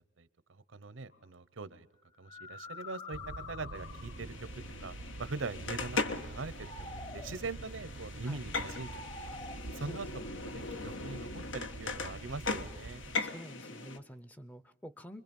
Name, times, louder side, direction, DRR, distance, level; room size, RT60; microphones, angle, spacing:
voice 1, 0.0-1.9 2.2-3.2 3.5-4.5 4.8-6.7 7.1-9.0 9.3-9.4 9.7-13.0, right 3 dB, 85° right, 16 dB, 0.9 m, -42 dB
sound 1, 1.1-1.3 2.1-4.4 6.3-7.5 8.4-9.6, left 3 dB, 35° left, 1.3 m, -47 dB
sound 2, 3.1-13.2, right 2 dB, 60° right, 0.6 m, -47 dB
sound 3, 3.8-14.0, left 3 dB, 75° left, 1.3 m, -40 dB
voice 2, 13.1-15.2, equal, 10° left, 14 dB, 0.6 m, -48 dB
25.5 x 21.5 x 5.4 m, 0.94 s
head